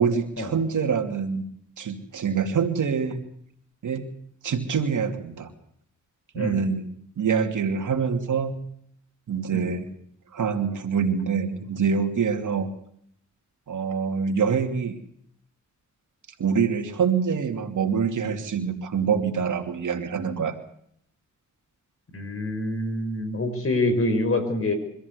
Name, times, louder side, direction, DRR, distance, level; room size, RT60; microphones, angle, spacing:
voice 1, 0.0-1.4 1.8-3.2 3.8-4.1 4.4-5.5 6.3-6.9 7.2-8.6 9.3-9.9 10.3-12.7 13.7-14.9 16.4-20.5, right 6 dB, 75° right, 5 dB, 2.8 m, -25 dB
voice 2, 22.1-24.7, left 2 dB, 45° left, 8 dB, 5.4 m, -26 dB
24.5 x 14.5 x 8.2 m, 0.69 s
cardioid pair, 75°, 31 cm